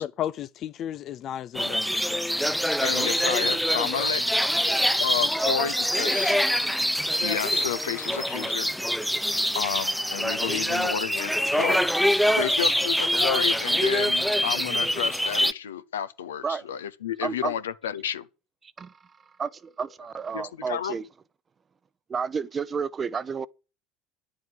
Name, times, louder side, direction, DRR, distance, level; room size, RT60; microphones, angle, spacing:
voice 1, 0.0-2.4, left 11 dB, 45° left, 0.5 m, -34 dB
sound 1, 1.5-15.5, equal, ahead, 0.6 m, -25 dB
voice 2, 2.8-4.2 5.0-6.4 7.2-8.7 9.5-11.8 12.4-18.3 20.3-21.0, left 9 dB, 75° left, 0.9 m, -31 dB
voice 3, 17.2-17.5 18.8-18.9 19.4-21.0 22.1-23.5, right 6 dB, 25° right, 0.8 m, -31 dB
10.5 x 7.4 x 7.9 m
figure-of-eight pair, 70°, 0 cm